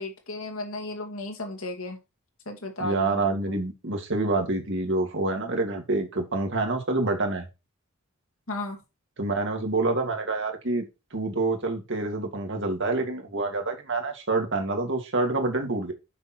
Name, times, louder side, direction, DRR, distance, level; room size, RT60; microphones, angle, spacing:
voice 1, 0.0-2.0 2.5-3.6 8.5-8.8, left 2 dB, 75° left, 2.7 m, -34 dB
voice 2, 2.8-7.4 9.2-10.8 11.1-15.9, right 2 dB, 60° right, 2.2 m, -27 dB
7.0 x 6.0 x 4.4 m
head